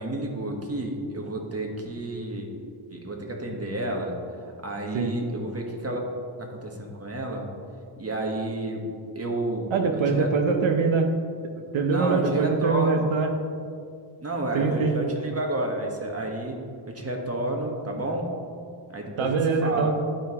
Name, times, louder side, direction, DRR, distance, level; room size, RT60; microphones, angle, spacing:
voice 1, 0.0-2.5 2.9-4.1 4.6-6.0 6.4-7.4 8.0-8.8 9.1-9.7 10.1-10.3 11.8-13.1 14.2-16.6 16.9-18.2 18.9-19.9, right 1 dB, 30° right, 1 dB, 1.2 m, -30 dB
voice 2, 9.7-11.1 11.5-13.3 14.5-15.0 19.2-20.0, right 4 dB, 75° right, 4 dB, 0.7 m, -23 dB
11.5 x 4.6 x 2.9 m, 2.3 s
wide cardioid pair, 70°, 47 cm